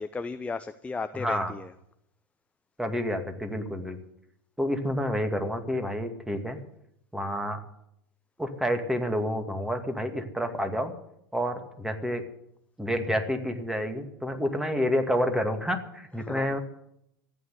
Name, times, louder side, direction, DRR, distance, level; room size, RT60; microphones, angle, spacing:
voice 1, 0.0-1.7 16.2-16.6, left 4 dB, 10° left, 11 dB, 0.7 m, -35 dB
voice 2, 1.2-1.5 2.8-4.0 4.6-6.6 7.1-7.6 8.4-10.9 11.3-12.2 12.8-16.6, equal, 5° right, 7 dB, 2.3 m, -29 dB
14.0 x 9.2 x 9.5 m, 0.77 s
hypercardioid pair, 85°, 12 cm